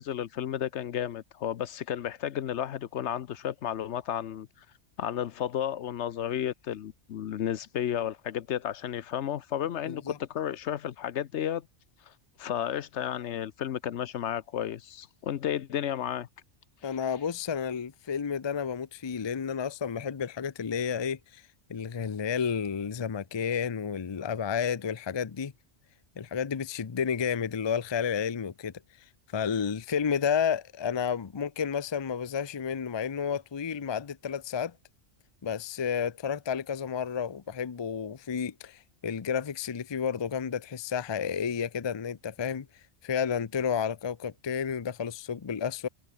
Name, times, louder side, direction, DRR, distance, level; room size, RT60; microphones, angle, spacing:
voice 1, 0.0-4.5 5.0-11.7 12.1-12.2 12.4-16.3, left 10 dB, 70° left, 1.0 m, -32 dB
voice 2, 9.9-10.2 16.8-21.4 21.7-25.5 26.2-28.7 29.3-34.7 35.4-42.7 43.0-45.9, left 7 dB, 30° left, 0.5 m, -31 dB
omnidirectional pair, 1.2 m